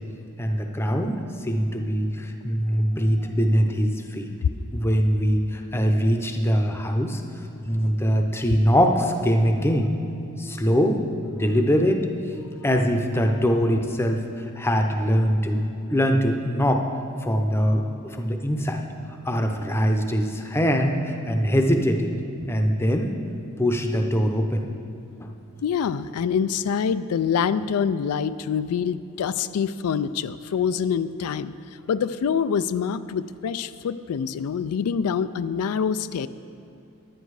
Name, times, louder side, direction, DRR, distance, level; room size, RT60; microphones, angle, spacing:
voice 1, 0.4-4.3 4.7-7.2 7.7-9.9 10.4-11.0 11.3-12.0 12.6-15.6 15.9-16.9 17.2-18.9 19.2-22.1 22.5-23.1 23.6-24.7 25.2-25.3, equal, 10° left, 4 dB, 0.6 m, -22 dB
voice 2, 25.6-31.5 31.9-36.3, left 7 dB, 90° left, 13 dB, 0.3 m, -25 dB
10.5 x 10.0 x 4.8 m, 2.8 s
head